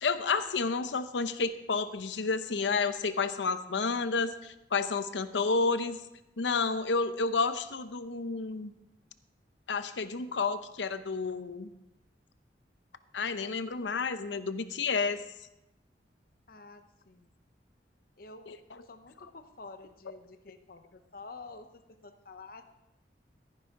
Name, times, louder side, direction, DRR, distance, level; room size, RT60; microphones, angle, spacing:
voice 1, 0.0-6.0 6.4-8.7 9.7-11.7 13.1-15.2 18.5-18.6, left 4 dB, 90° left, 12 dB, 0.7 m, -30 dB
voice 2, 16.5-17.3 18.2-18.5 18.8-22.6, left 3 dB, 55° left, 8 dB, 0.8 m, -49 dB
15.0 x 9.8 x 3.7 m, 0.88 s
head